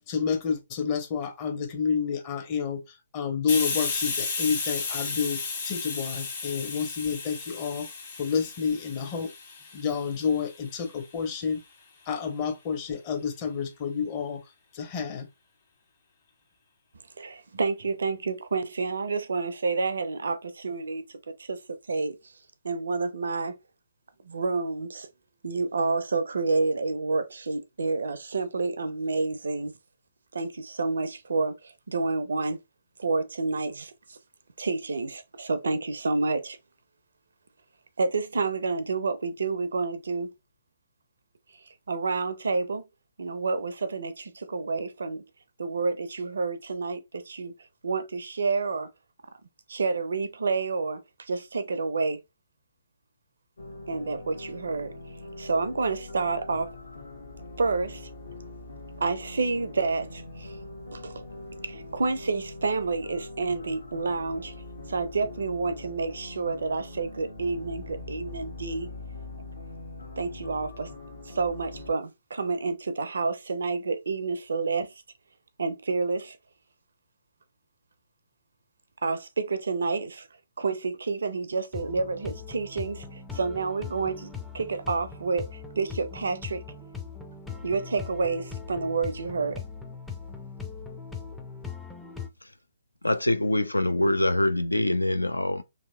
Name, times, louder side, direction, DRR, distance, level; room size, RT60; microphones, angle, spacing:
voice 1, 0.1-2.8 3.1-7.9 8.2-9.3 9.7-11.6 12.1-14.4 14.7-15.2, left 6 dB, 30° left, 0.7 m, -29 dB
Hiss, 3.5-10.9, left 4 dB, 45° left, 1.3 m, -33 dB
voice 2, 17.2-21.0 21.4-21.6 21.9-22.2 22.6-23.6 24.2-25.1 25.4-29.7 30.3-32.6 33.0-34.2 34.6-36.6 38.0-40.3 41.9-42.8 43.2-45.2 45.6-47.5 47.8-48.9 49.7-52.2 53.9-54.9 55.4-56.7 57.6-58.0 59.0-60.5 60.9-61.2 61.6-64.5 64.9-68.9 70.2-70.9 71.3-74.9 75.6-76.4 79.0-80.3 80.6-86.6 87.6-89.6, right 4 dB, 65° right, 0.4 m, -29 dB
sound 1, 53.6-71.9, left 2 dB, 65° left, 0.9 m, -42 dB
sound 2, 81.7-92.3, left 5 dB, 5° left, 0.4 m, -40 dB
voice 3, 93.0-95.6, left 1 dB, 85° left, 0.3 m, -24 dB
3.0 x 2.7 x 2.2 m
figure-of-eight pair, 130°, 0 cm